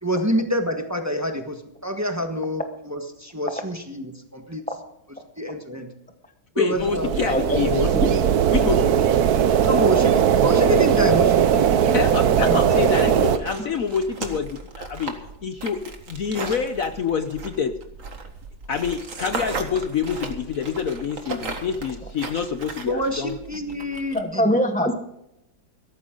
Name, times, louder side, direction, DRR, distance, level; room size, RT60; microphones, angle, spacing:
voice 1, 0.0-4.6 5.4-5.9 6.5-7.1 9.6-11.3 11.8-12.0 12.4-12.8 22.9-24.5 24.8-24.9, equal, 10° right, 4 dB, 1.3 m, -27 dB
voice 2, 6.6-7.9 8.5-8.8 11.9-15.1 15.4-15.8 16.1-17.7 18.7-23.4, left 6 dB, 55° left, 8 dB, 1.0 m, -26 dB
sound 1, 6.8-13.4, right 8 dB, 60° right, 1.2 m, -19 dB
voice 3, 7.9-8.3 24.1-24.9, equal, 5° left, 6 dB, 0.6 m, -22 dB
sound 2, 9.7-24.2, right 4 dB, 45° right, 2.0 m, -37 dB
16.5 x 14.0 x 3.9 m, 0.82 s
omnidirectional pair, 2.0 m